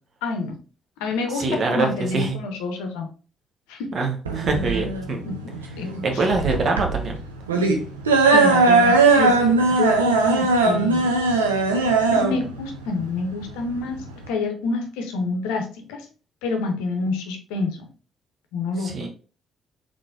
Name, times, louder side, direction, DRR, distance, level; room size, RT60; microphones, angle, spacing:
voice 1, 0.2-0.6 1.0-3.1 3.7-3.9 5.2-5.4 5.8-6.2 8.3-11.1 12.1-16.1 16.4-17.9 18.5-19.1, left 3 dB, 75° left, 4 dB, 0.6 m, -28 dB
voice 2, 1.3-2.4 3.9-5.3 6.0-7.2 18.8-19.1, right 3 dB, 50° right, 3 dB, 0.9 m, -24 dB
sound 1, 4.2-14.3, right 3 dB, 85° right, 0.4 m, -19 dB
3.8 x 3.3 x 2.4 m, 0.37 s
figure-of-eight pair, 40°, 0 cm